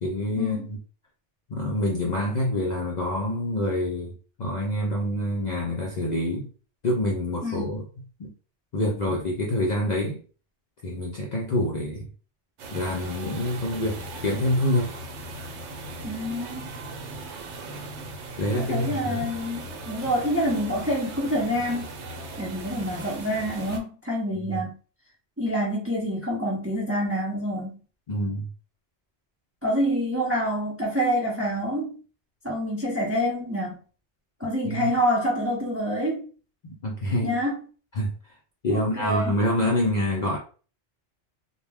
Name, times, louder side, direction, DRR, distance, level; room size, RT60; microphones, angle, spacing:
voice 1, 0.0-0.8 1.5-4.1 4.4-6.5 6.8-7.8 8.2-8.3 8.7-10.2 10.8-12.1 12.7-14.9 18.4-19.3 28.1-28.5 34.6-34.9 36.6-37.4 38.0-38.1 38.6-40.4, left 1 dB, 55° left, 0.5 m, -26 dB
voice 2, 7.4-7.8 16.0-16.8 18.5-21.9 22.4-24.8 25.4-27.8 29.6-32.0 32.4-33.8 34.4-36.3 37.2-37.6 38.7-39.3, equal, 15° right, 0.5 m, -27 dB
sound 1, 12.6-23.8, right 2 dB, 80° right, 0.9 m, -38 dB
2.2 x 2.1 x 3.3 m
omnidirectional pair, 1.2 m